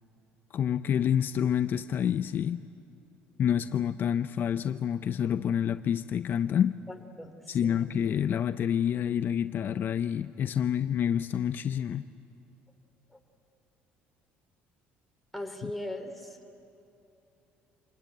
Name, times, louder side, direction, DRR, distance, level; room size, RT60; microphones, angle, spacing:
voice 1, 0.5-2.6 3.4-6.7 7.5-12.0 15.6-15.7, left 9 dB, 50° left, 11 dB, 0.5 m, -28 dB
voice 2, 6.9-7.3 7.6-7.8 15.3-16.4, left 1 dB, ahead, 3 dB, 2.9 m, -38 dB
26.0 x 20.0 x 9.4 m, 2.8 s
cardioid pair, 100°, 4 cm